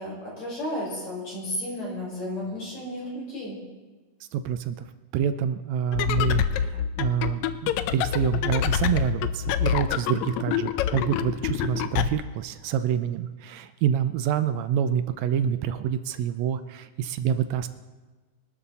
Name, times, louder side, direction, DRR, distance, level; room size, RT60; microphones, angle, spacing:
voice 1, 0.0-3.6, left 1 dB, 55° left, -5 dB, 7.0 m, -33 dB
voice 2, 4.3-4.9 5.1-17.7, right 9 dB, 80° right, 11 dB, 1.6 m, -27 dB
sound 1, 5.9-12.1, left 9 dB, 80° left, 1.7 m, -26 dB
24.0 x 12.5 x 4.2 m, 1.3 s
omnidirectional pair, 3.7 m